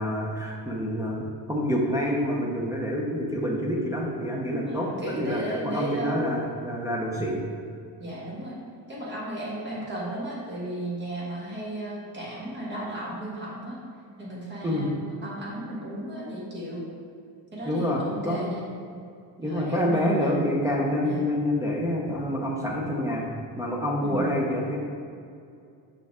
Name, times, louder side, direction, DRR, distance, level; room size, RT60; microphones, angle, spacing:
voice 1, 0.0-7.4 14.6-14.9 17.7-18.5 19.4-23.3 23.6-24.8, equal, 10° right, -4 dB, 0.3 m, -27 dB
voice 2, 4.5-6.2 8.0-8.5 8.9-13.8 14.2-16.8 17.5-18.6 19.4-20.3 21.0-21.3 24.0-24.3, right 1 dB, 25° right, -5 dB, 1.4 m, -35 dB
6.4 x 5.5 x 3.5 m, 2.4 s
cardioid pair, 180°, 41 cm